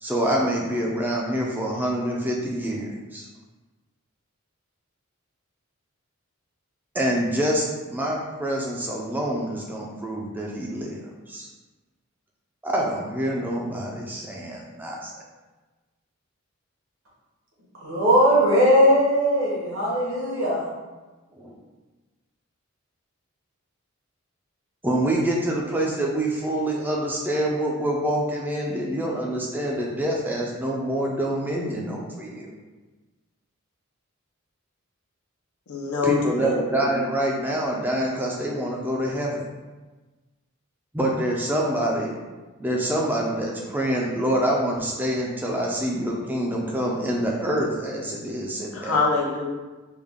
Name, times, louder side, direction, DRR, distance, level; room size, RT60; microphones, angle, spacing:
voice 1, 0.0-3.2 6.9-11.0 11.3-11.5 12.6-15.1 21.4-21.5 24.8-32.5 36.0-39.4 40.9-42.1 42.6-49.0, right 1 dB, 10° right, 0.4 m, -26 dB
voice 2, 17.8-20.6, equal, 70° right, 1.2 m, -19 dB
voice 3, 35.7-36.6 48.7-49.5, left 4 dB, 90° left, 0.6 m, -24 dB
3.4 x 2.3 x 3.5 m
head